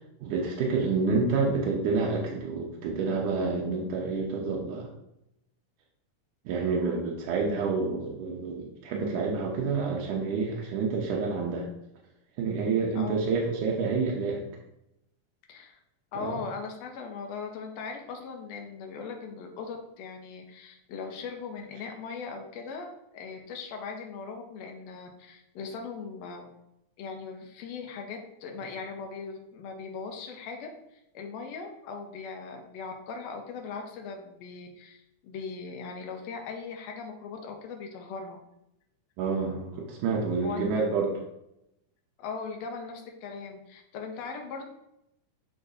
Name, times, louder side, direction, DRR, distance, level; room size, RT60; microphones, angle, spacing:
voice 1, 0.2-4.9 6.5-11.7 12.4-14.5 16.2-16.4 39.2-41.2, right 4 dB, 85° right, -2 dB, 2.3 m, -28 dB
voice 2, 12.9-13.3 15.5-15.8 16.1-26.5 27.0-30.7 31.1-38.4 40.4-40.6 42.2-44.7, left 5 dB, 70° left, 2 dB, 1.8 m, -39 dB
10.0 x 3.9 x 2.6 m, 0.84 s
omnidirectional pair, 3.6 m